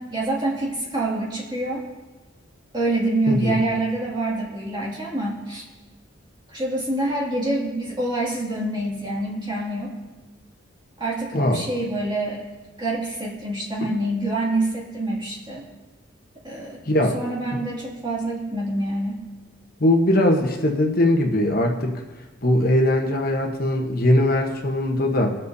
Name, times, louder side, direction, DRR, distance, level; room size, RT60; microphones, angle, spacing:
voice 1, 0.0-1.8 2.7-5.6 6.5-9.9 11.0-12.4 12.8-15.6 16.4-16.8 17.1-19.2, right 2 dB, 25° right, -5 dB, 2.4 m, -26 dB
voice 2, 3.3-3.6 11.3-11.6 16.9-17.2 17.5-17.6 19.8-22.0 22.4-25.4, left 1 dB, 50° left, 2 dB, 1.0 m, -20 dB
22.0 x 7.5 x 2.7 m, 1.2 s
head